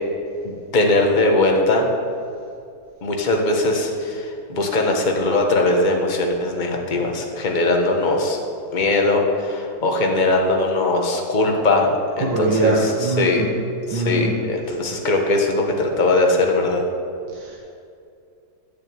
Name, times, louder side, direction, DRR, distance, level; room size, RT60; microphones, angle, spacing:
voice 1, 0.4-1.9 3.0-8.4 8.7-11.9 12.2-13.4 13.9-16.8, left 2 dB, 25° left, 1 dB, 1.4 m, -20 dB
voice 2, 12.2-13.5 13.9-14.4 17.3-17.6, right 3 dB, 70° right, -2 dB, 1.9 m, -22 dB
12.0 x 6.5 x 8.9 m, 2.5 s
omnidirectional pair, 2.1 m